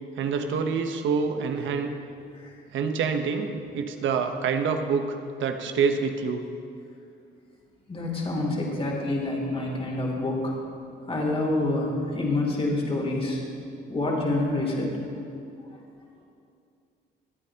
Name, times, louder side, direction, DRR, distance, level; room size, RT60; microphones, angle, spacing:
voice 1, 0.2-1.9 2.7-6.4, right 5 dB, 75° right, 6 dB, 1.0 m, -26 dB
voice 2, 7.9-10.5 11.1-13.4 13.9-14.9, left 2 dB, 30° left, -1 dB, 2.9 m, -27 dB
22.0 x 8.5 x 2.9 m, 2.6 s
cardioid pair, 90°, 20 cm